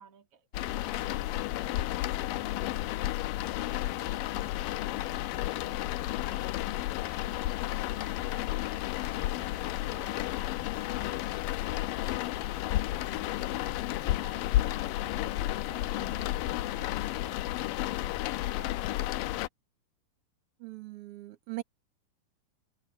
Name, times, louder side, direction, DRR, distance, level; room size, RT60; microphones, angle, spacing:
voice 1, 0.0-9.4 9.9-19.2, right 5 dB, 45° right, 3.9 m, -59 dB
sound 1, 0.5-19.5, left 15 dB, 85° left, 2.4 m, -32 dB
sound 2, 11.8-18.3, left 4 dB, 40° left, 3.2 m, -50 dB
voice 2, 20.6-21.6, right 18 dB, 60° right, 1.7 m, -40 dB
omnidirectional pair, 3.9 m